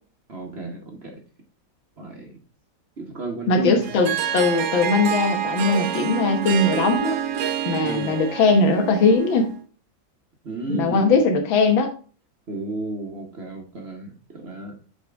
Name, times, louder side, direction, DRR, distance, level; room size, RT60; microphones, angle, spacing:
voice 1, 0.3-1.2 2.0-2.4 3.0-4.0 7.8-8.1 10.4-11.2 12.5-14.7, right 2 dB, 40° right, 2 dB, 1.2 m, -33 dB
voice 2, 3.5-7.2 7.7-9.5 10.7-11.9, left 3 dB, 85° left, 5 dB, 1.9 m, -20 dB
Harp, 3.8-9.6, right 9 dB, 70° right, 1.3 m, -27 dB
8.1 x 4.3 x 3.4 m, 0.38 s
omnidirectional pair, 2.1 m